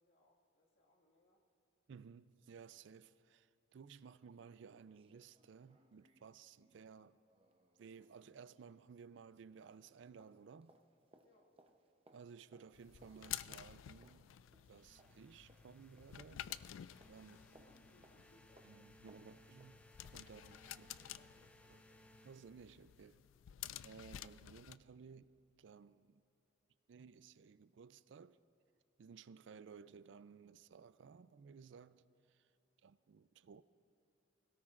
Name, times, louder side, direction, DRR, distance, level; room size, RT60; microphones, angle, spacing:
voice 1, 0.0-1.5 11.2-11.6 17.2-18.8 20.2-22.1 32.5-32.9, left 1 dB, 65° left, 1.9 m, -72 dB
voice 2, 1.9-7.2 7.8-10.8 12.1-14.3 14.7-16.8 17.1-17.4 18.7-19.8 20.1-20.9 21.7-21.8 22.3-23.2 23.8-25.3 25.6-26.2 26.9-28.4 29.0-32.5 32.8-33.6, right 6 dB, 70° right, 0.4 m, -57 dB
sound 1, 4.4-4.5 4.8-9.4 9.6-21.3 21.6-21.7, right 2 dB, 30° right, 0.7 m, -71 dB
sound 2, 12.7-24.8, left 12 dB, 90° left, 0.3 m, -52 dB
sound 3, 14.8-23.1, left 1 dB, 5° left, 0.3 m, -65 dB
25.0 x 17.5 x 2.5 m
head